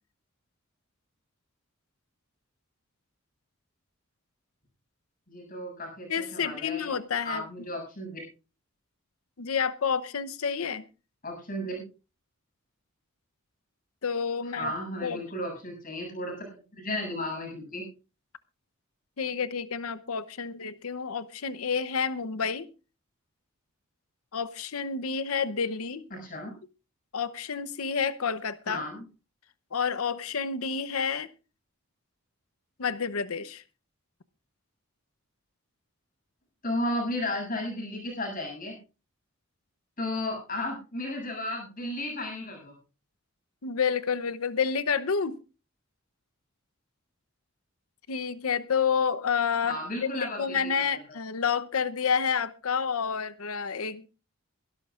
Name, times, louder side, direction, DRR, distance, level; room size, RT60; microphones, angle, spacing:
voice 1, 5.3-6.9 7.2-8.2 11.2-11.8 14.6-16.5 16.8-17.9 26.1-26.5 28.7-29.0 36.6-38.8 40.0-42.7 49.6-51.0, left 1 dB, 40° left, 7.7 m, -34 dB
voice 2, 6.1-7.4 9.4-10.8 14.0-14.7 15.0-15.2 19.2-22.7 24.3-26.1 27.1-28.8 29.7-31.3 32.8-33.6 43.6-45.4 48.1-54.1, left 6 dB, 90° left, 0.8 m, -29 dB
23.0 x 12.5 x 2.5 m
head